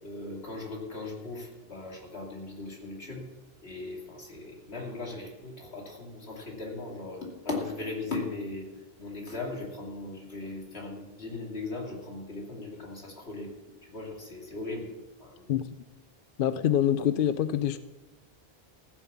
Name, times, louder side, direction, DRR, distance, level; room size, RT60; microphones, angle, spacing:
voice 1, 0.0-3.3 3.6-8.7 9.0-13.5 13.8-14.9 15.2-15.5, left 3 dB, 80° left, 3.0 m, -38 dB
voice 2, 16.4-17.8, left 10 dB, 65° left, 0.7 m, -25 dB
14.5 x 7.3 x 7.1 m
omnidirectional pair, 1.0 m